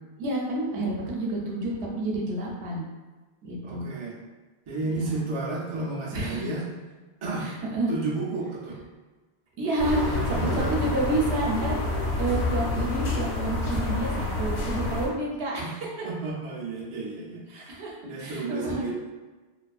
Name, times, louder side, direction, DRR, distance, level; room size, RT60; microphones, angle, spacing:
voice 1, 0.2-2.8 3.4-3.9 4.9-5.2 6.1-6.6 7.4-7.9 9.6-11.8 12.2-15.7 17.5-17.9 18.2-18.9, right 2 dB, 85° right, -2 dB, 0.9 m, -29 dB
voice 2, 3.6-4.2 4.7-6.7 7.2-7.5 7.9-8.8 10.0-10.8 15.6-15.7 16.0-17.7 18.0-18.9, right 3 dB, 50° right, -4 dB, 0.4 m, -32 dB
sound 1, 9.8-15.1, left 2 dB, 80° left, 0.8 m, -28 dB
2.5 x 2.4 x 2.3 m, 1.2 s
omnidirectional pair, 1.1 m